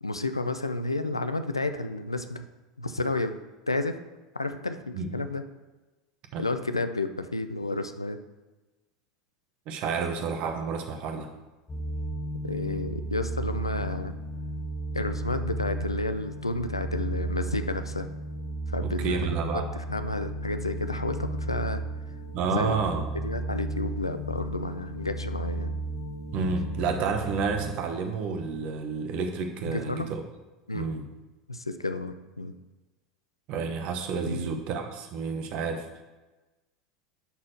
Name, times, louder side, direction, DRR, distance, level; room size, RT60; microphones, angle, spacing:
voice 1, 0.0-2.4 2.8-3.4 3.7-4.0 4.3-5.4 6.4-8.2 12.4-14.1 14.9-18.1 18.7-21.8 22.5-22.7 23.1-25.8 29.7-30.1 30.7-31.0 31.5-32.5 34.3-34.6, left 2 dB, 85° left, 10 dB, 0.4 m, -31 dB
voice 2, 9.7-11.3 18.8-19.7 22.3-23.0 26.3-30.2 30.7-31.1 33.5-36.0, right 5 dB, 45° right, 6 dB, 1.1 m, -30 dB
sound 1, 11.7-27.7, right 1 dB, 20° left, 1.3 m, -34 dB
11.0 x 4.3 x 4.4 m, 1.1 s
figure-of-eight pair, 75°, 3 cm